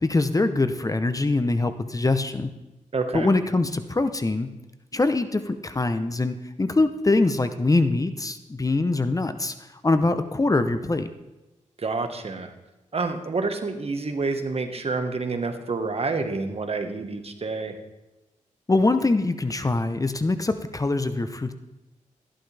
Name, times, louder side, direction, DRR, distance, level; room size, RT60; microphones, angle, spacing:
voice 1, 0.0-2.5 3.1-4.5 4.9-9.5 9.8-11.1 18.7-21.5, left 2 dB, 25° left, 10 dB, 0.8 m, -23 dB
voice 2, 2.9-3.3 11.8-12.5 12.9-17.8, right 3 dB, 50° right, 6 dB, 1.5 m, -28 dB
13.5 x 11.5 x 3.4 m, 1.0 s
cardioid pair, 65°, 13 cm